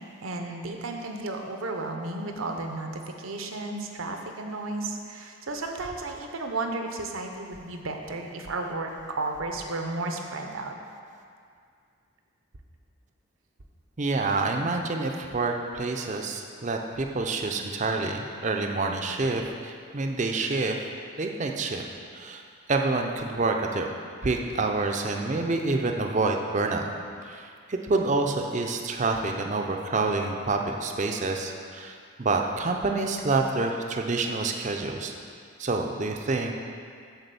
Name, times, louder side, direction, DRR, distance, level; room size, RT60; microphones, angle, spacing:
voice 1, 0.2-8.9 9.1-10.7, right 2 dB, 75° right, 3 dB, 0.8 m, -33 dB
voice 2, 14.0-20.8 21.2-21.9 22.1-22.4 22.7-23.9 24.2-26.9 27.2-35.1 35.6-36.5, right 3 dB, 35° right, 3 dB, 0.5 m, -27 dB
8.1 x 4.1 x 6.8 m, 2.3 s
head